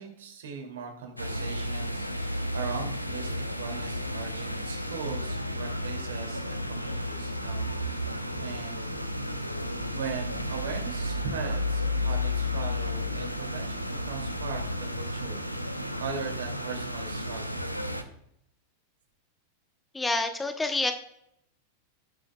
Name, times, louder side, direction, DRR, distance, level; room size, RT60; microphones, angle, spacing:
voice 1, 0.0-8.9 9.9-14.7 14.9-17.7, right 6 dB, 65° right, 2 dB, 2.4 m, -39 dB
sound 1, 1.2-18.0, left 1 dB, 90° left, 0.7 m, -32 dB
voice 2, 19.9-20.9, left 2 dB, 10° left, 8 dB, 0.8 m, -27 dB
18.0 x 6.2 x 2.3 m, 0.76 s
figure-of-eight pair, 90°, 0 cm